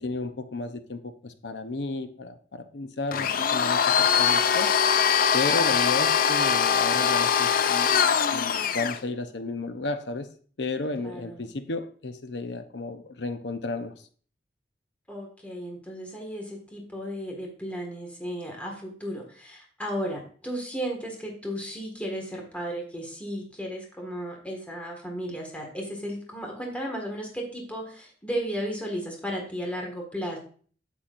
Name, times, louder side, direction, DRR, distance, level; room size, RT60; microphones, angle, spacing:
voice 1, 0.0-4.7 5.3-10.3 10.6-13.9, left 3 dB, 75° left, 0.8 m, -33 dB
Domestic sounds home sounds, 3.1-9.0, left 7 dB, 50° left, 0.5 m, -22 dB
voice 2, 11.0-11.5 15.1-30.4, equal, 10° left, 1.8 m, -34 dB
8.2 x 7.6 x 2.6 m
head